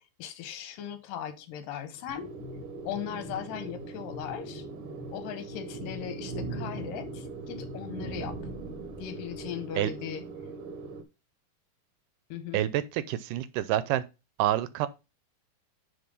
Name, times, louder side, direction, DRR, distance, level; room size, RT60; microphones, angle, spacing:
voice 1, 0.2-2.4 2.8-4.6 5.1-8.4 9.0-10.2 12.3-12.7, left 9 dB, 80° left, 2.7 m, -38 dB
sound 1, 2.1-8.9, left 4 dB, 55° left, 2.4 m, -49 dB
sound 2, 2.1-11.0, right 3 dB, 60° right, 1.4 m, -40 dB
voice 2, 12.5-14.0 14.4-14.9, right 13 dB, 80° right, 2.0 m, -27 dB
9.6 x 3.8 x 5.3 m
omnidirectional pair, 3.9 m